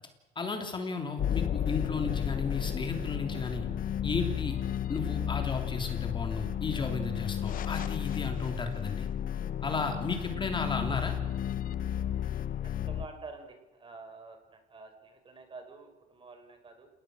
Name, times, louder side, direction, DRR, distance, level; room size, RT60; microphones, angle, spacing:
voice 1, 0.3-3.7 4.0-4.6 4.9-9.1 9.6-11.2, left 4 dB, 30° left, 5 dB, 3.1 m, -34 dB
sound 1, 1.2-13.1, left 9 dB, 55° left, 1.0 m, -33 dB
voice 2, 12.9-16.9, right 4 dB, 30° right, 6 dB, 4.7 m, -48 dB
29.5 x 18.5 x 6.4 m, 1.0 s
cardioid pair, 110°, 17 cm